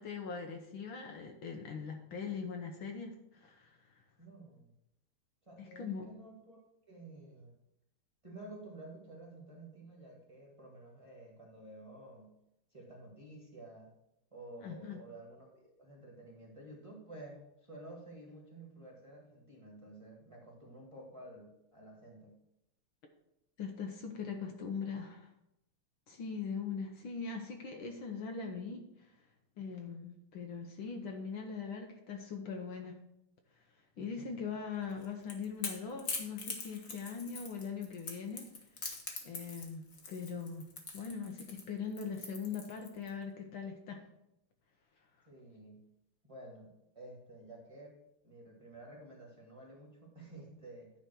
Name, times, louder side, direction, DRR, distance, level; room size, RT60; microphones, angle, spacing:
voice 1, 0.0-3.8 5.6-6.1 14.6-15.0 23.6-25.3 26.1-29.1 29.6-33.0 34.0-38.5 39.2-40.7 40.9-44.0, left 5 dB, 70° left, 3 dB, 1.7 m, -41 dB
voice 2, 4.2-4.7 5.5-6.6 6.9-7.5 8.2-12.3 12.7-13.9 14.3-22.4 34.0-34.5 45.3-45.8 46.2-48.0 48.2-50.9, right 1 dB, 15° right, -2 dB, 2.0 m, -52 dB
Crackle / Crack, 34.9-43.1, left 4 dB, 45° left, 1.4 m, -43 dB
10.0 x 4.1 x 6.3 m, 0.83 s
omnidirectional pair, 2.4 m